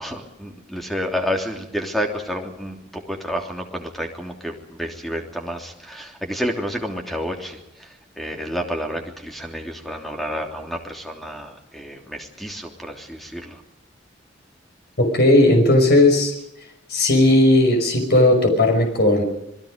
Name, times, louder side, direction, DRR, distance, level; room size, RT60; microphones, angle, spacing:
voice 1, 0.0-13.6, equal, ahead, 3 dB, 3.1 m, -30 dB
voice 2, 15.0-16.3 16.9-19.2, left 1 dB, 55° left, 4 dB, 5.6 m, -16 dB
27.5 x 21.0 x 5.2 m, 0.86 s
head